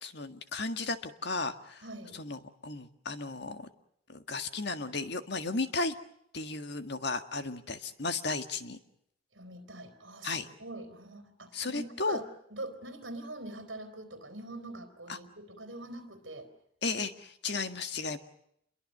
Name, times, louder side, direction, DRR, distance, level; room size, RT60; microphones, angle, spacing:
voice 1, 0.0-1.8 2.2-3.7 4.1-5.9 6.3-8.8 10.2-10.5 11.5-12.2 16.8-18.2, left 3 dB, 55° left, 8 dB, 1.7 m, -34 dB
voice 2, 1.8-2.2 9.3-16.5, right 2 dB, 60° right, 5 dB, 4.0 m, -43 dB
28.5 x 23.0 x 6.7 m, 0.72 s
head